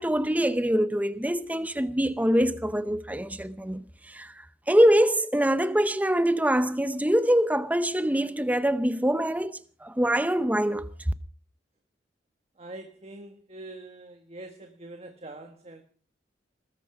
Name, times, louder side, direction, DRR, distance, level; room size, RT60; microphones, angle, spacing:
voice 1, 0.0-4.3 4.7-10.9, equal, 10° right, 0.8 m, -24 dB
voice 2, 12.6-15.8, right 2 dB, 35° right, 1.6 m, -44 dB
20.5 x 13.5 x 5.0 m
head